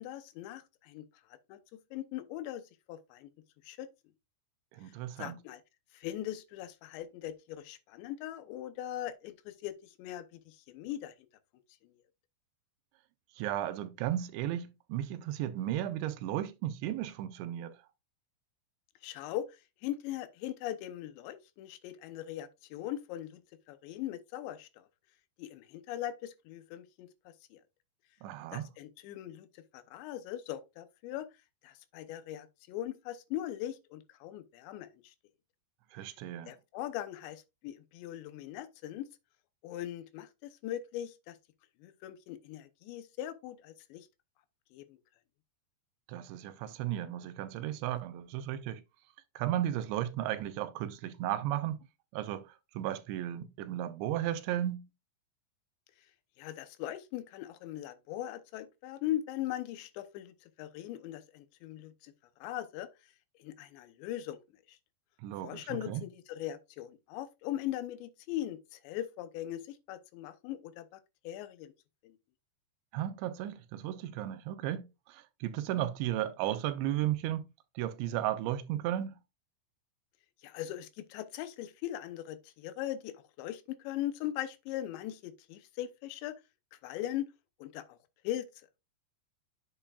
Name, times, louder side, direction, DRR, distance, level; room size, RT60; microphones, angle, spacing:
voice 1, 0.0-2.6 2.9-3.3 3.6-3.9 4.8-4.9 5.2-5.6 5.9-11.1 11.8-11.9 19.0-23.4 23.7-24.9 25.4-27.6 28.5-31.3 31.6-35.1 36.5-39.1 39.6-41.4 41.8-44.1 44.7-45.0 56.4-62.1 62.4-62.9 63.4-64.4 64.7-64.8 65.4-71.7 72.0-72.2 80.4-86.3 86.7-87.3 87.6-88.0 88.2-88.7, left 13 dB, 85° left, 3.1 m, -40 dB
voice 2, 4.7-5.4 13.4-17.7 28.2-28.7 35.9-36.5 46.1-48.8 49.4-51.8 52.1-54.9 65.2-66.0 72.9-77.5 77.8-79.1, right 12 dB, 90° right, 3.1 m, -34 dB
8.7 x 7.5 x 2.4 m
omnidirectional pair, 5.0 m